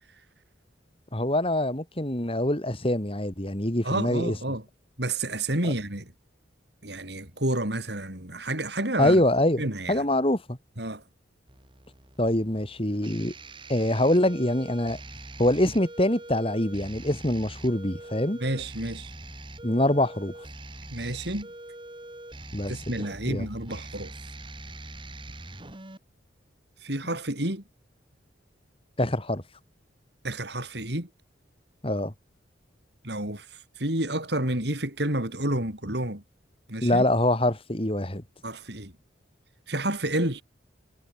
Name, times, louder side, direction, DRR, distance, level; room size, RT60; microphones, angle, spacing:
voice 1, 1.1-4.4 5.6-5.7 9.0-9.6 9.9-10.6 12.2-13.3 13.7-15.0 15.4-18.4 19.6-20.3 22.5-22.7 23.3-23.5 29.0-29.4 31.8-32.1 36.8-38.2, left 1 dB, 30° left, 2.8 m, -24 dB
voice 2, 3.8-4.6 5.0-6.1 6.8-9.2 9.6-10.0 10.8-11.0 18.4-19.1 20.9-21.5 22.7-24.1 26.8-27.6 30.2-31.1 33.0-36.2 36.7-37.0 38.4-38.9 39.7-40.4, right 1 dB, 60° right, 5.2 m, -30 dB
sound 1, 11.5-26.0, right 2 dB, 25° right, 3.0 m, -43 dB
head